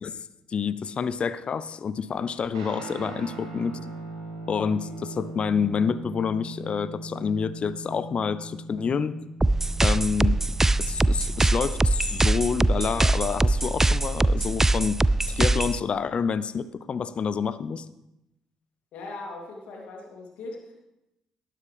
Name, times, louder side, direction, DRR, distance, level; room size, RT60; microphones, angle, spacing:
voice 1, 0.0-3.8 4.5-9.2 9.8-10.4 10.9-15.0 15.3-17.9, left 6 dB, 45° left, 16 dB, 0.5 m, -28 dB
Guitar, 2.5-11.4, right 2 dB, 80° right, 1.9 m, -40 dB
sound 1, 9.4-15.8, right 2 dB, 15° right, 0.3 m, -22 dB
voice 2, 18.9-20.7, left 2 dB, 60° left, -1 dB, 2.6 m, -39 dB
18.5 x 7.5 x 3.5 m, 0.90 s
figure-of-eight pair, 45°, 3 cm